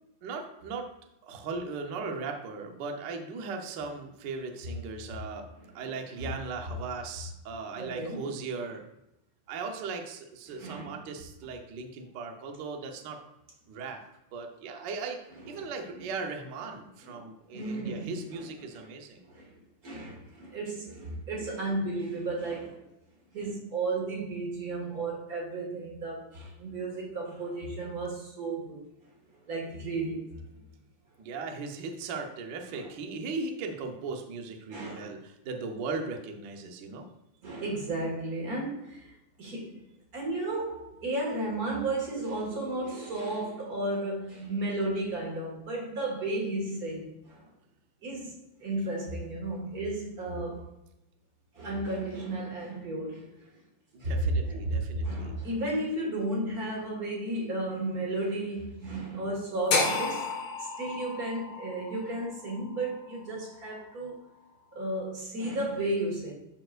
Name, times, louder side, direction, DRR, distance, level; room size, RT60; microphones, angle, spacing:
voice 1, 0.2-0.9 1.2-5.5 5.7-8.8 9.5-13.2 13.7-14.0 14.3-15.2 15.5-19.2 31.2-37.1 53.9-55.3, right 4 dB, 85° right, 0.9 m, -38 dB
voice 2, 5.8-6.3 7.8-8.3 10.5-11.0 15.4-15.7 16.0-16.1 17.0-17.2 17.5-18.5 19.2-22.8 23.3-28.8 29.5-30.4 32.7-32.9 34.7-35.1 37.4-39.8 40.1-47.5 48.0-50.7 51.5-53.3 54.0-54.2 54.4-60.3 60.6-64.2 64.7-66.3, right 2 dB, 35° right, 2.0 m, -34 dB
sound 1, 59.7-63.8, left 3 dB, 70° left, 2.7 m, -32 dB
12.5 x 4.5 x 2.5 m
omnidirectional pair, 3.4 m